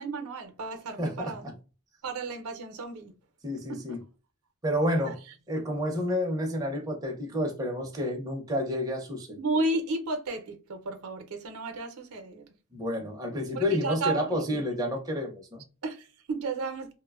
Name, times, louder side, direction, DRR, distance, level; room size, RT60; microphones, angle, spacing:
voice 1, 0.0-1.5 2.0-3.1 3.7-4.0 5.0-5.1 9.3-12.5 13.5-14.4 15.8-16.9, right 2 dB, 80° right, 0.5 m, -33 dB
voice 2, 1.0-1.3 3.4-4.0 4.6-5.2 5.5-9.4 12.7-15.6, left 1 dB, 15° right, 0.5 m, -30 dB
2.9 x 2.0 x 2.2 m
head